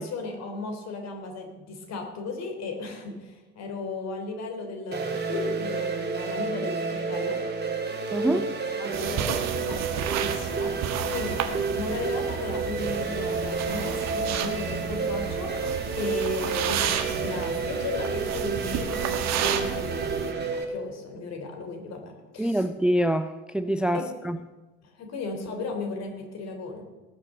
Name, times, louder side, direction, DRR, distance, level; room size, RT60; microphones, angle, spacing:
voice 1, 0.0-7.4 8.2-22.7 23.9-24.0 24.8-26.8, left 3 dB, 50° left, 3.4 m, -36 dB
sound 1, 4.9-20.6, right 4 dB, 30° right, 2.7 m, -30 dB
sound 2, 8.9-20.3, right 9 dB, 50° right, 1.5 m, -32 dB
voice 2, 22.4-24.4, right 1 dB, 5° right, 0.5 m, -25 dB
18.5 x 6.4 x 7.3 m
figure-of-eight pair, 60°, 34 cm